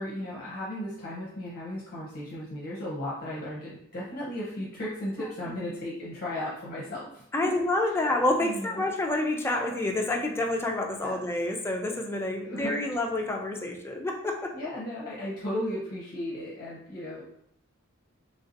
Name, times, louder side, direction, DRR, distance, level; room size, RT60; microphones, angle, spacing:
voice 1, 0.0-7.2 7.5-7.6 8.4-8.8 11.0-11.3 12.4-12.9 14.5-17.3, left 1 dB, 45° left, -5 dB, 0.7 m, -35 dB
voice 2, 7.3-14.5, left 2 dB, 10° left, 1 dB, 0.4 m, -28 dB
3.2 x 2.7 x 2.6 m, 0.71 s
head